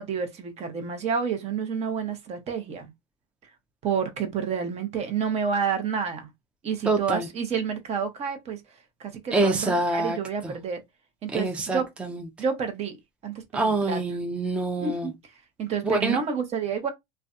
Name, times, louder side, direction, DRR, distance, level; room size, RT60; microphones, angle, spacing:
voice 1, 0.0-2.9 3.8-6.3 6.6-8.6 9.0-10.8 11.2-11.9 12.4-13.0 13.2-14.0 14.8-15.1 15.6-16.9, right 6 dB, 35° right, 0.7 m, -29 dB
voice 2, 6.9-7.3 9.3-10.2 11.3-12.2 13.5-15.1 15.8-16.2, right 3 dB, 5° right, 0.4 m, -25 dB
2.5 x 2.2 x 2.4 m
supercardioid pair, 110°, 18 cm